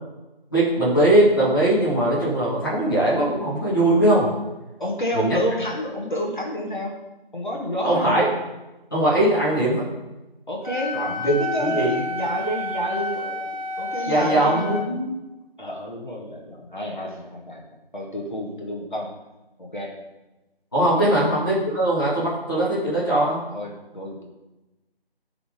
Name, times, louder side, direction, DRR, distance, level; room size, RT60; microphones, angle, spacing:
voice 1, 0.5-4.3 5.1-5.4 7.8-8.3 8.9-9.9 10.9-12.0 14.0-15.1 20.7-23.4, right 1 dB, 20° left, -9 dB, 2.0 m, -20 dB
voice 2, 4.8-6.9 7.3-8.2 10.5-11.0 11.2-14.7 15.6-17.6 17.9-19.1 19.6-19.9 21.0-21.2 23.5-24.2, equal, 50° left, -2 dB, 2.0 m, -29 dB
Wind instrument woodwind instrument, 10.6-14.9, left 2 dB, 35° right, 1.5 m, -30 dB
12.0 x 4.1 x 5.2 m, 1.0 s
figure-of-eight pair, 170°, 31 cm